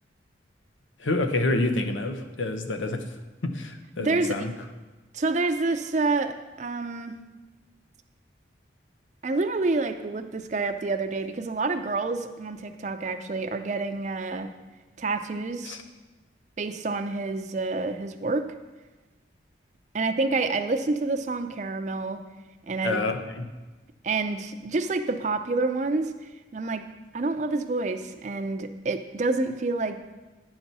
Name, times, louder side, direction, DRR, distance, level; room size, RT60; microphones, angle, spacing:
voice 1, 1.0-3.0 3.4-4.5 15.7-15.8 22.8-23.5, left 2 dB, 90° left, 7 dB, 0.7 m, -28 dB
voice 2, 4.0-4.5 5.1-7.2 9.2-14.5 15.0-15.8 16.6-18.5 19.9-22.2 22.7-23.0 24.0-26.1 26.5-26.8 27.1-30.0, right 3 dB, 40° right, 8 dB, 0.4 m, -28 dB
10.0 x 6.0 x 4.1 m, 1.2 s
head